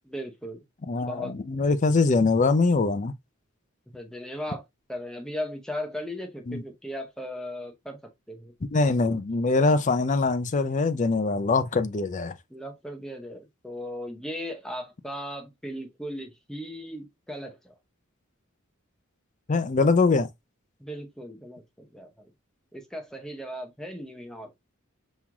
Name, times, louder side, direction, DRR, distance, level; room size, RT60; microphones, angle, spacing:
voice 1, 0.1-0.6 1.1-1.3 3.9-4.6 4.9-8.5 12.5-17.7 20.8-22.3 22.7-24.5, equal, 5° left, 0.7 m, -37 dB
voice 2, 0.9-3.1 6.5-6.6 8.7-12.4 19.5-20.3, left 3 dB, 35° left, 0.5 m, -23 dB
5.5 x 3.0 x 2.2 m
head